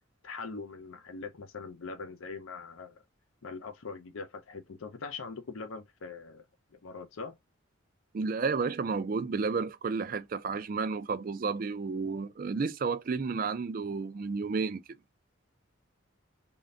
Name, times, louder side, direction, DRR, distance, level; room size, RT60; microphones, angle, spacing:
voice 1, 0.2-3.0 3.4-6.4 6.7-7.4, left 4 dB, 85° left, 0.7 m, -42 dB
voice 2, 8.1-14.8, right 4 dB, 45° right, 0.4 m, -31 dB
3.7 x 2.2 x 3.7 m
head